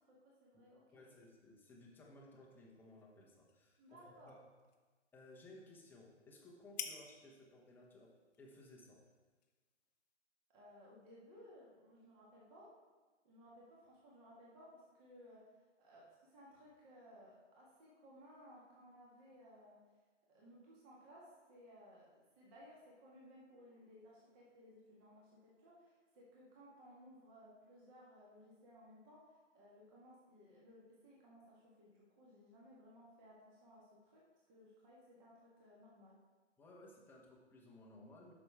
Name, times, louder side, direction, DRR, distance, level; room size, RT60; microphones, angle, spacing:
voice 1, 0.0-1.0 3.8-4.3 10.5-12.7 13.2-15.4 15.8-19.8 20.3-29.2 29.5-34.2 34.5-36.2, equal, 30° right, -5 dB, 1.8 m, -60 dB
voice 2, 0.9-4.4 5.1-8.1 8.4-9.0 36.6-38.3, left 1 dB, 5° left, -3 dB, 0.9 m, -59 dB
sound 1, 2.4-10.2, left 8 dB, 35° left, 0.7 m, -55 dB
7.5 x 6.1 x 4.7 m, 1.3 s
hypercardioid pair, 135°, 37 cm